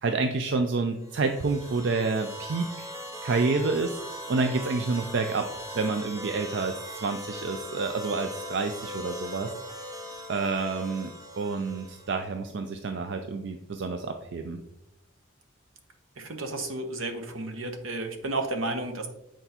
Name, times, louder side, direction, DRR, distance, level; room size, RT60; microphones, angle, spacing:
voice 1, 0.0-2.9 3.2-4.0 4.3-5.5 5.7-9.6 10.3-11.1 11.4-14.6, right 3 dB, 60° right, 6 dB, 0.4 m, -28 dB
sound 1, 1.0-12.3, equal, 15° right, 0.6 m, -40 dB
voice 2, 16.2-19.1, right 2 dB, 80° right, 5 dB, 0.9 m, -32 dB
7.9 x 4.4 x 2.9 m, 0.86 s
head